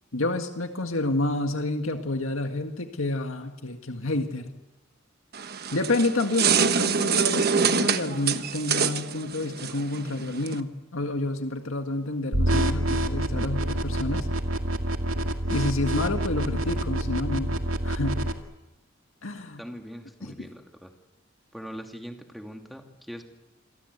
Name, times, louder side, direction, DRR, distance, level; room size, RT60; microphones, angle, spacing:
voice 1, 0.1-4.5 5.7-14.3 15.5-17.5 17.8-18.3 19.2-19.6 20.2-20.5, left 2 dB, 80° left, 5 dB, 1.9 m, -29 dB
sound 1, 5.3-10.6, right 6 dB, 50° right, 1.3 m, -25 dB
sound 2, 12.3-18.3, right 1 dB, 85° right, 2.2 m, -27 dB
voice 2, 19.6-20.9 21.5-23.2, equal, ahead, 3 dB, 2.6 m, -41 dB
27.5 x 23.5 x 8.3 m, 0.98 s
head